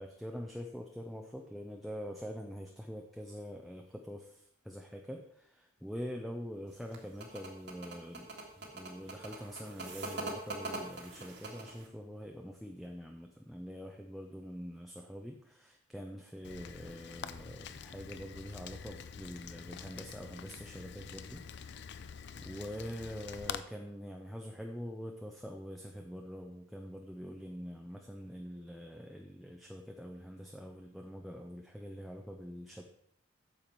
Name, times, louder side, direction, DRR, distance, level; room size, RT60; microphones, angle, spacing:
voice 1, 0.0-8.3 8.6-32.8, equal, ahead, 1 dB, 0.6 m, -45 dB
sound 1, 6.7-11.9, right 2 dB, 55° right, 1.8 m, -43 dB
Rain, 16.4-23.6, left 7 dB, 55° left, 0.5 m, -46 dB
9.0 x 7.1 x 4.6 m, 0.70 s
head